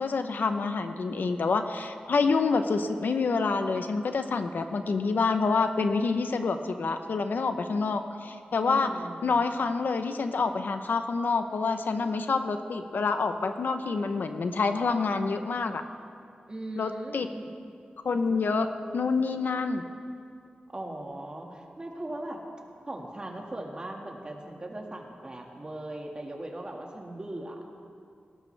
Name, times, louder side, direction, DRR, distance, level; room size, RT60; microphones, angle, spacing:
voice 1, 0.0-8.9 9.2-15.8 16.8-17.3 18.0-19.9, left 4 dB, 75° left, 8 dB, 0.8 m, -27 dB
voice 2, 8.6-9.3 16.5-17.5 20.7-22.4 22.9-27.6, right 1 dB, 30° right, 1 dB, 1.9 m, -39 dB
18.5 x 18.5 x 3.4 m, 2.4 s
wide cardioid pair, 110°, 3 cm